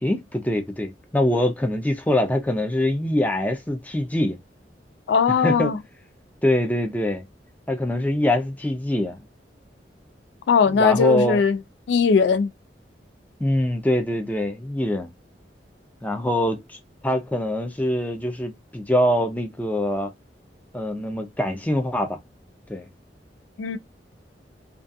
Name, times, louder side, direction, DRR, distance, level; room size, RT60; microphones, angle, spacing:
voice 1, 0.0-4.4 5.4-5.7 6.4-7.3 7.7-9.2 10.7-11.4 13.4-15.1 16.0-16.8 17.0-20.1 20.7-22.2 22.7-22.9, left 1 dB, 10° left, 0.4 m, -24 dB
voice 2, 5.1-5.8 10.5-11.6 11.9-12.5 23.6-23.8, left 5 dB, 75° left, 0.3 m, -19 dB
2.3 x 2.3 x 2.5 m
head